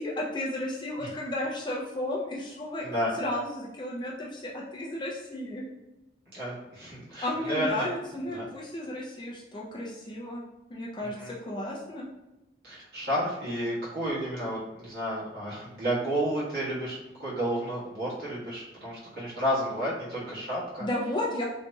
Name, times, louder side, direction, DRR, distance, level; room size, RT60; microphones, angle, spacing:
voice 1, 0.0-2.8 3.1-5.6 7.2-10.4 10.7-12.1 20.8-21.4, left 1 dB, 25° left, -3 dB, 0.4 m, -33 dB
voice 2, 2.8-3.1 6.3-7.9 8.3-8.4 11.0-11.3 12.6-20.9, equal, 60° right, -9 dB, 1.3 m, -31 dB
2.9 x 2.7 x 2.2 m, 0.98 s
head